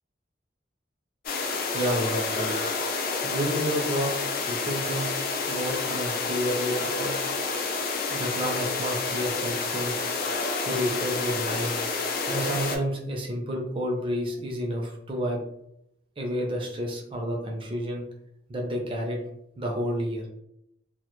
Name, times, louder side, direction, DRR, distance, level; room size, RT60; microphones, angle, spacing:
sound 1, 1.3-12.8, left 4 dB, 55° left, 0.3 m, -29 dB
voice 1, 1.5-2.6 3.2-5.1 5.5-7.2 8.1-9.9 10.6-11.8 12.3-15.4 16.2-18.0 18.5-19.2 19.6-20.2, equal, 30° right, 1 dB, 0.4 m, -30 dB
2.1 x 2.0 x 2.9 m, 0.79 s
head